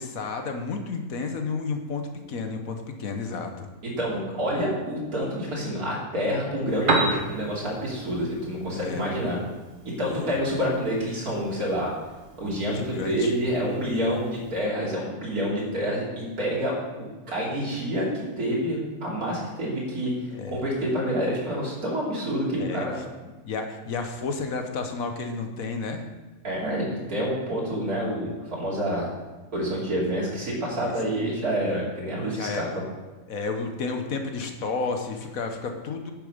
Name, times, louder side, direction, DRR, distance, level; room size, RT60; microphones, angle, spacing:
voice 1, 0.0-2.0 2.3-3.7 8.7-9.1 10.1-10.4 12.7-13.3 14.1-14.2 20.3-20.6 22.6-22.9 23.4-26.1 30.8-30.9 32.3-32.6 33.3-36.1, left 4 dB, 70° left, 5 dB, 1.4 m, -31 dB
voice 2, 4.0-9.4 9.8-11.9 12.4-20.1 20.5-23.0 26.4-29.1 29.5-32.7, equal, 75° right, -5 dB, 3.5 m, -28 dB
Piano, 6.6-14.6, right 3 dB, 40° right, 1.2 m, -34 dB
10.0 x 6.8 x 5.1 m, 1.2 s
omnidirectional pair, 1.5 m